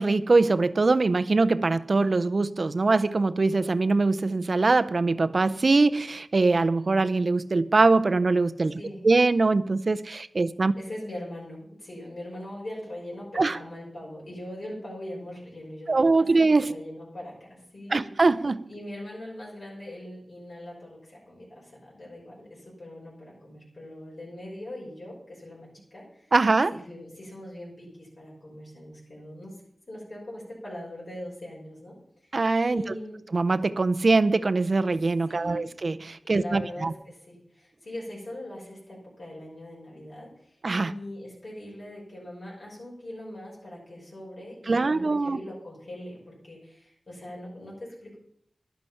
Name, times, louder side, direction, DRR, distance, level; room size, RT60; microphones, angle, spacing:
voice 1, 0.0-10.7 13.4-13.6 15.9-16.7 17.9-18.6 26.3-26.8 32.3-32.9 33.3-36.9 40.6-40.9 44.7-45.4, right 3 dB, 55° right, 0.5 m, -23 dB
voice 2, 10.8-18.1 18.7-26.3 26.7-29.6 29.9-32.0 32.2-32.3 32.7-33.2 35.3-35.8 36.2-48.2, left 1 dB, 60° left, 6.0 m, -41 dB
11.5 x 11.5 x 5.7 m
wide cardioid pair, 100°, 0 cm